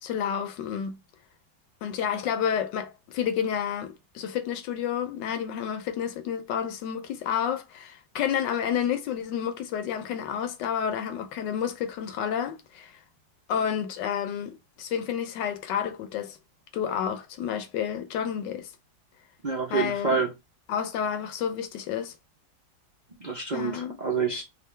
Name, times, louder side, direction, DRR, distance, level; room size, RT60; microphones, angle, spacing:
voice 1, 0.0-1.0 1.8-13.0 13.5-16.4 16.7-18.7 19.7-20.2 20.7-22.1 23.5-24.0, left 8 dB, 75° left, 1.3 m, -30 dB
voice 2, 19.4-20.3 23.2-24.4, right 5 dB, 75° right, 0.4 m, -27 dB
3.7 x 2.4 x 3.2 m
omnidirectional pair, 2.0 m